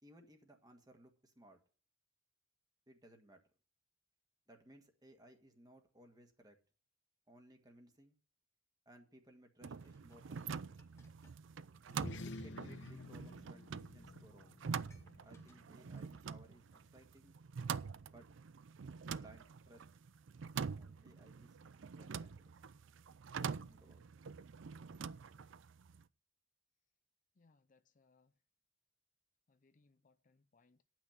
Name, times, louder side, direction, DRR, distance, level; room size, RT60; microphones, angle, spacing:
voice 1, 0.0-1.6 2.9-3.4 4.5-6.6 7.3-8.2 8.8-10.7 12.2-14.5 15.2-17.4 18.0-18.3 19.0-19.9 20.8-22.5 23.4-24.0, right 1 dB, 20° right, 1.6 m, -62 dB
sound 1, 9.6-26.0, right 6 dB, 70° right, 0.4 m, -46 dB
Dishes pots and pans, 9.7-12.1 12.4-12.6 13.4-13.5 13.9-14.0 14.2-16.4 16.8-16.9, left 2 dB, 15° left, 1.8 m, -74 dB
sound 2, 11.9-16.7, left 2 dB, 60° left, 0.8 m, -52 dB
voice 2, 27.4-28.3 29.5-30.8, left 3 dB, 40° left, 0.5 m, -72 dB
10.0 x 6.1 x 8.7 m
head